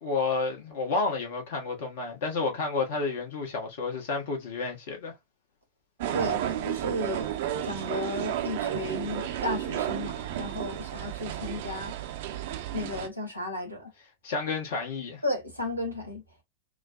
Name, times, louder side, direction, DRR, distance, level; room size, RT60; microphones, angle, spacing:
voice 1, 0.0-5.1 14.2-15.2, left 4 dB, 55° left, 1.2 m, -30 dB
sound 1, 6.0-13.1, right 11 dB, 55° right, 0.6 m, -32 dB
voice 2, 6.6-7.3 7.6-11.9 12.7-13.9 15.2-16.2, left 1 dB, 90° left, 1.3 m, -34 dB
4.7 x 2.2 x 2.6 m
figure-of-eight pair, 90°, 0 cm